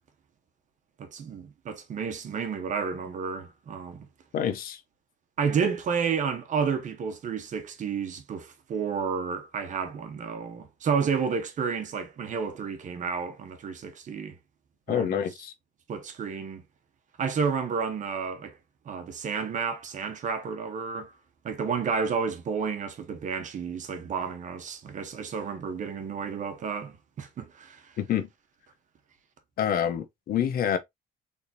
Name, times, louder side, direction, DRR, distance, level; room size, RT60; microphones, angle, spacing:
voice 1, 1.0-4.1 5.4-14.4 14.9-15.2 15.9-16.6 17.2-18.6 18.8-21.1 21.4-27.9, right 6 dB, 50° right, 1.1 m, -31 dB
voice 2, 4.3-4.8 14.9-15.5 28.0-28.3 29.6-30.8, left 9 dB, 60° left, 0.8 m, -27 dB
4.0 x 3.5 x 2.7 m
cardioid pair, 110°, 17 cm